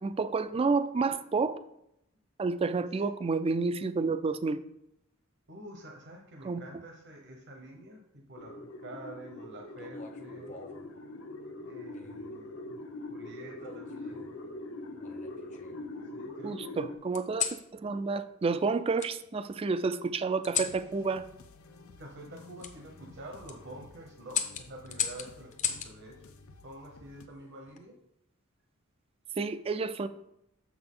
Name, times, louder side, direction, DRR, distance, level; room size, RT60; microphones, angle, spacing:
voice 1, 0.0-1.6 2.4-4.6 6.4-6.6 16.4-21.2 29.4-30.1, right 4 dB, 25° right, 12 dB, 0.3 m, -30 dB
voice 2, 5.5-10.5 11.6-12.8 13.1-14.3 16.1-16.8 22.0-26.3 26.6-27.9, right 1 dB, 55° right, 1 dB, 1.0 m, -48 dB
sound 1, 8.4-17.0, left 2 dB, 65° left, 0.9 m, -42 dB
sound 2, 9.8-10.9 11.9-12.3 13.6-14.4 15.0-15.9 17.1-17.6 19.0-19.1 20.4-20.8 22.6-22.7 23.3-23.6 24.3-25.9 27.4-27.8, left 8 dB, 35° left, 0.7 m, -36 dB
sound 3, 20.6-27.3, left 3 dB, 85° left, 0.6 m, -54 dB
6.9 x 6.1 x 3.7 m, 0.80 s
head